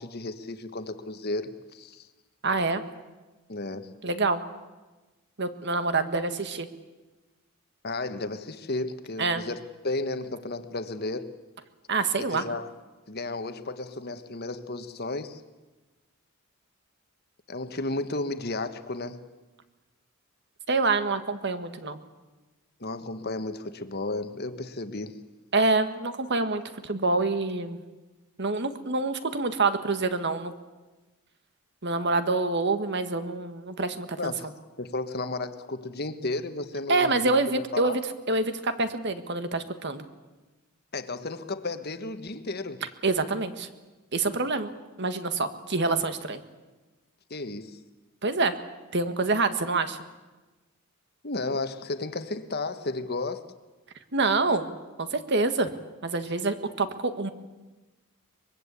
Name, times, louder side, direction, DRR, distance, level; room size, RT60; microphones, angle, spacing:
voice 1, 0.0-2.1 3.5-3.9 7.8-11.3 12.2-12.7 13.1-15.4 17.5-19.2 22.8-25.2 34.2-34.5 34.8-38.0 40.9-42.8 47.3-47.8 51.2-53.5, left 2 dB, 45° left, 1.4 m, -33 dB
voice 2, 2.4-2.8 4.0-4.4 5.4-6.7 9.2-9.4 11.9-12.4 20.7-22.0 25.5-27.8 28.4-30.5 31.8-34.3 36.9-38.0 38.3-40.1 43.0-43.7 44.1-44.7 45.0-46.4 48.2-48.5 48.9-50.0 54.1-55.7 56.0-57.3, right 3 dB, 50° right, 1.7 m, -26 dB
24.0 x 22.0 x 8.4 m
head